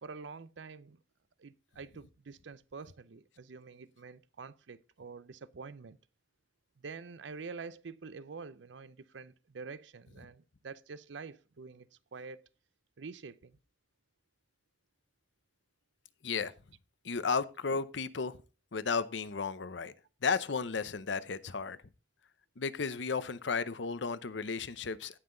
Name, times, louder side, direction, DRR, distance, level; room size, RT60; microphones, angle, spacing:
voice 1, 0.0-1.0 1.4-6.0 6.8-12.5 13.0-13.6, right 4 dB, 70° right, 0.6 m, -47 dB
voice 2, 17.0-18.4 18.7-19.9 20.2-21.8 22.6-25.2, left 5 dB, 70° left, 0.7 m, -34 dB
16.5 x 5.8 x 3.8 m
head